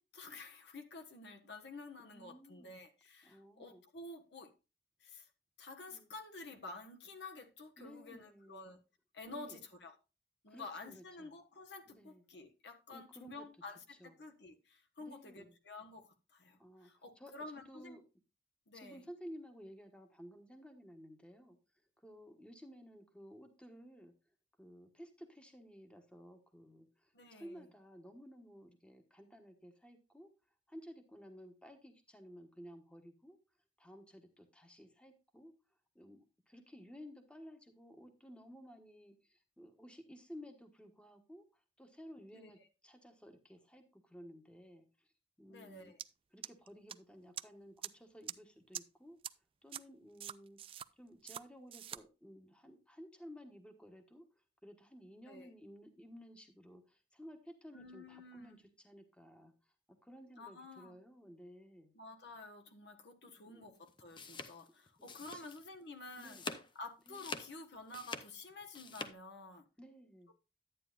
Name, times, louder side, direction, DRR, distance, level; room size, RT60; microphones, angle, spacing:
voice 1, 0.0-4.5 5.0-5.3 5.6-8.8 9.1-9.9 10.4-18.0 18.7-19.0 27.1-27.7 42.3-42.5 45.5-46.0 55.3-55.5 57.7-58.6 60.4-60.9 61.9-66.4 66.7-69.7, left 3 dB, 70° left, 1.4 m, -51 dB
voice 2, 2.0-2.7 3.2-3.8 5.9-6.1 7.8-8.7 9.3-9.6 10.5-11.3 11.9-12.2 12.9-13.4 13.9-14.2 15.0-15.6 16.6-17.3 17.7-18.0 18.7-21.6 22.0-24.1 24.6-30.3 30.7-33.4 33.8-35.5 35.9-45.1 45.4-45.9 46.3-49.2 49.6-50.6 51.0-59.7 60.0-61.9 63.2-63.8 65.0-65.5 66.2-66.4 67.1-67.2 69.8-70.3, equal, 5° left, 1.2 m, -55 dB
sound 1, 46.0-46.1 46.4-46.9 47.4-47.5 47.8-47.9 48.3-48.4 48.7-48.8 49.2-49.3 49.7-49.8 50.2-50.9 51.3-51.4 51.7-52.0, right 10 dB, 30° right, 0.3 m, -43 dB
sound 2, 63.9-65.8 66.1-66.7 67.1-69.1, left 3 dB, 25° left, 0.7 m, -46 dB
11.5 x 9.0 x 2.4 m
head